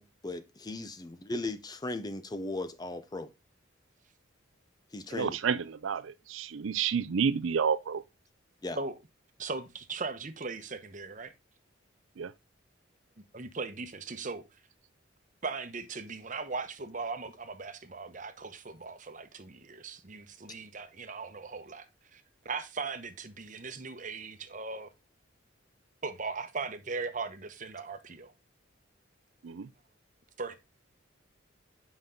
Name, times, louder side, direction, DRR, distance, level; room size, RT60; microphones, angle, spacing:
voice 1, 0.0-3.3 4.9-5.4 8.6-8.8, left 2 dB, 20° left, 0.5 m, -37 dB
voice 2, 5.1-8.0 12.2-12.3 29.4-29.7, right 6 dB, 80° right, 0.5 m, -30 dB
voice 3, 9.4-11.3 13.3-14.4 15.4-24.9 26.0-28.3 30.4-30.6, right 4 dB, 40° right, 0.9 m, -39 dB
7.8 x 5.4 x 3.6 m
head